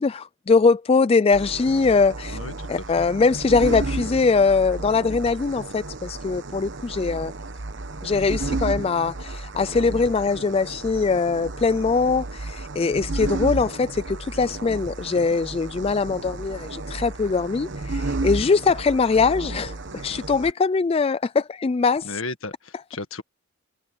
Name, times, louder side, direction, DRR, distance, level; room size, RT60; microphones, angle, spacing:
voice 1, 0.0-2.4 2.7-7.3 8.0-22.1, left 4 dB, 30° left, 0.3 m, -22 dB
sound 1, 1.3-20.5, right 2 dB, 60° right, 1.1 m, -32 dB
voice 2, 2.3-3.1 22.0-23.2, left 3 dB, 70° left, 1.9 m, -34 dB
head